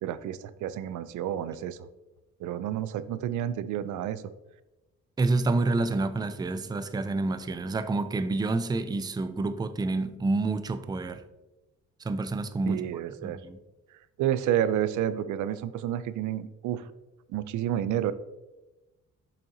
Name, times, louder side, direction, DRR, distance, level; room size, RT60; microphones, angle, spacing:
voice 1, 0.0-1.9 2.4-4.2 12.7-13.4 14.2-16.8 17.3-18.1, right 11 dB, 80° right, 15 dB, 0.5 m, -30 dB
voice 2, 5.2-11.2 12.0-12.8 13.2-13.6, right 3 dB, 15° right, 11 dB, 0.4 m, -28 dB
7.2 x 5.4 x 2.7 m, 1.0 s
cardioid pair, 90°, 30 cm